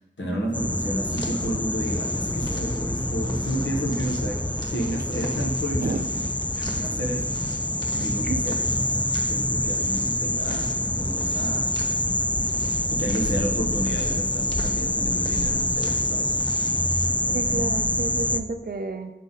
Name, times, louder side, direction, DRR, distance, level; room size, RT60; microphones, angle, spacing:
voice 1, 0.0-4.4 4.7-6.1 6.6-7.4 8.0-8.6 8.9-11.7 12.9-16.3, equal, 80° left, -2 dB, 1.3 m, -31 dB
sound 1, 0.5-18.4, left 1 dB, 10° left, 0.3 m, -26 dB
sound 2, 0.9-17.0, equal, 25° left, 1.4 m, -42 dB
voice 2, 6.7-7.1 7.9-8.4 17.3-19.1, right 3 dB, 55° right, 7 dB, 0.5 m, -31 dB
8.2 x 3.7 x 4.1 m, 1.0 s
wide cardioid pair, 45°, 19 cm